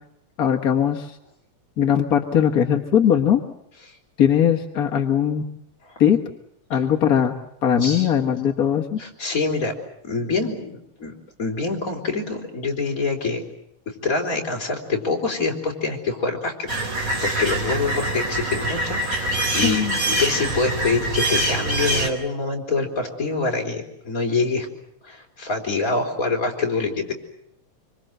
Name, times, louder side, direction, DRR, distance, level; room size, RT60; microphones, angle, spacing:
voice 1, 0.4-1.2 1.8-3.4 4.2-5.5 6.0-6.2 6.7-7.4 7.6-9.0 19.6-20.0, left 9 dB, 45° left, 3 dB, 1.2 m, -20 dB
voice 2, 9.0-9.7 10.0-11.1 11.4-13.4 14.0-16.9 17.2-24.7 25.0-27.1, left 3 dB, 30° left, 1 dB, 4.5 m, -25 dB
sound 1, 16.7-22.1, right 1 dB, 25° right, 4.1 m, -24 dB
26.0 x 25.0 x 7.9 m, 0.74 s
omnidirectional pair, 3.3 m